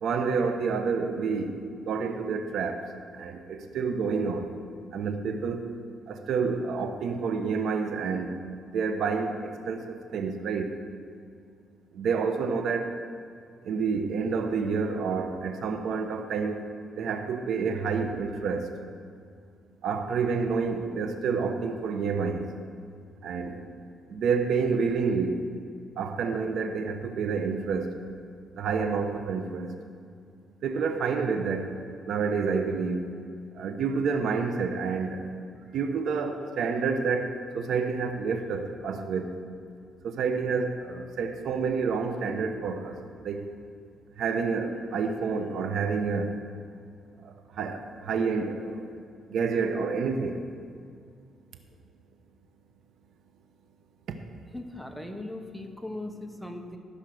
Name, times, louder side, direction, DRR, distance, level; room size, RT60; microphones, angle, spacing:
voice 1, 0.0-1.5 1.9-2.8 3.2-4.5 4.9-5.6 6.1-8.4 8.7-10.7 11.9-12.9 13.6-16.6 17.0-18.7 19.8-22.5 23.2-23.6 24.1-25.4 26.0-27.9 28.6-29.7 30.6-31.7 32.1-33.1 33.6-35.3 35.7-37.3 37.5-39.3 40.0-42.9 43.2-43.4 44.2-46.3 47.6-47.8 48.0-48.8 49.3-50.4, right 5 dB, 70° right, 6 dB, 1.0 m, -28 dB
voice 2, 54.5-56.8, left 1 dB, ahead, 4 dB, 1.1 m, -38 dB
14.5 x 5.7 x 6.5 m, 2.3 s
cardioid pair, 90°, 0 cm